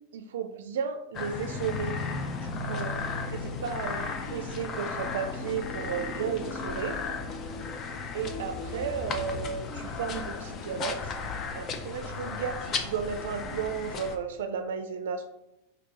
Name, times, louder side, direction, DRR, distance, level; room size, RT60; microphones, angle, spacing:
voice 1, 0.1-2.0 2.3-3.0 3.3-7.0 8.1-11.1 11.5-15.3, right 6 dB, 85° right, 8 dB, 0.4 m, -34 dB
sound 1, 1.1-14.2, left 4 dB, 25° left, 0.5 m, -35 dB
4.5 x 2.8 x 4.0 m, 0.92 s
supercardioid pair, 155°, 0 cm